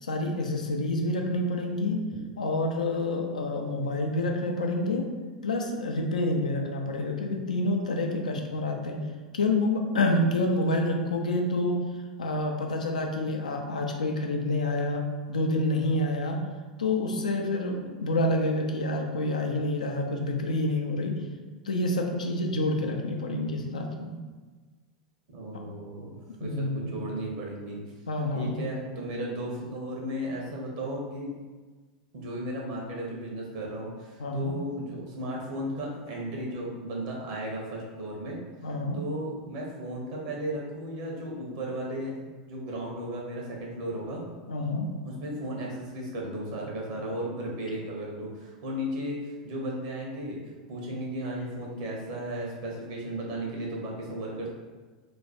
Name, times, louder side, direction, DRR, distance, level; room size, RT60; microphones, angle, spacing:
voice 1, 0.0-2.0 2.4-5.1 5.4-9.0 9.3-11.8 12.2-15.0 15.3-16.4 16.8-21.2 21.6-24.2 26.4-26.9 28.1-28.5 34.2-34.6 38.6-39.0 44.5-44.9, left 2 dB, 80° left, 2 dB, 0.5 m, -28 dB
voice 2, 25.3-26.1 26.4-27.8 28.3-31.4 32.1-38.4 38.9-44.2 45.0-54.5, right 1 dB, 60° right, -2 dB, 1.1 m, -35 dB
3.0 x 2.2 x 4.2 m, 1.4 s
figure-of-eight pair, 90°, 4 cm